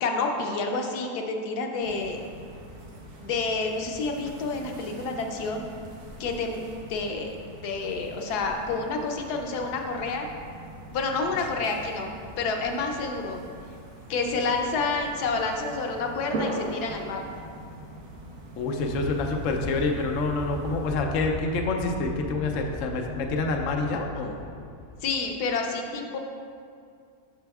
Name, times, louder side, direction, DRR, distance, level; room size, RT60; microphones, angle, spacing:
voice 1, 0.0-2.2 3.2-5.6 6.2-6.6 6.9-7.3 7.6-10.3 10.9-13.4 14.1-17.2 25.0-26.2, left 3 dB, 90° left, 3 dB, 1.2 m, -29 dB
sound 1, 1.8-20.9, right 1 dB, 65° right, 1.3 m, -41 dB
voice 2, 18.6-24.4, left 3 dB, 65° left, 2 dB, 0.9 m, -27 dB
Aircraft, 18.8-25.1, left 1 dB, 35° left, 0.9 m, -38 dB
8.9 x 6.0 x 2.3 m, 2.3 s
omnidirectional pair, 1.6 m